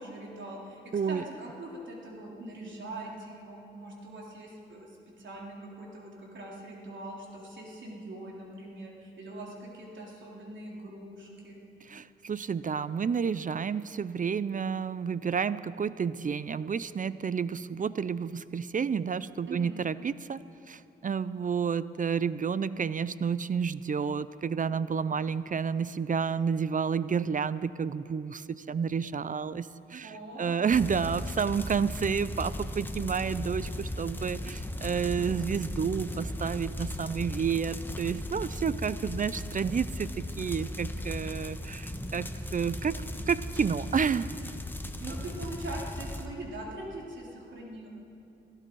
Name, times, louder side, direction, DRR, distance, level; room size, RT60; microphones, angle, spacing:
voice 1, 0.0-4.9 5.2-11.6 19.5-19.8 30.0-30.5 45.0-47.9, right 1 dB, 65° right, -2 dB, 3.6 m, -42 dB
voice 2, 0.9-1.2 11.8-20.4 20.7-44.3, right 6 dB, 40° right, 16 dB, 0.5 m, -30 dB
sound 1, 30.7-46.3, left 1 dB, 10° left, 1.3 m, -37 dB
17.0 x 16.5 x 4.7 m, 2.7 s
supercardioid pair, 55°, 21 cm